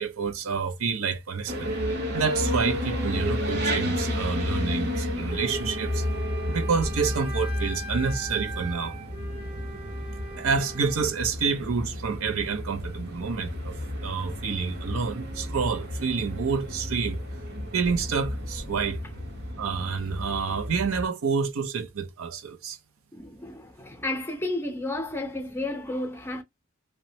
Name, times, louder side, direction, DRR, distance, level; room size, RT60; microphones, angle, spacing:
voice 1, 0.0-1.7 2.1-6.1 6.5-9.0 10.4-17.2 17.7-19.0 19.6-22.8, right 5 dB, 70° right, 0.5 m, -28 dB
sound 1, 1.5-21.1, left 1 dB, 50° right, 1.0 m, -32 dB
Wind instrument woodwind instrument, 5.3-11.2, right 2 dB, 25° right, 0.6 m, -41 dB
voice 2, 23.1-26.4, left 2 dB, 10° left, 0.6 m, -32 dB
3.0 x 2.1 x 2.7 m
head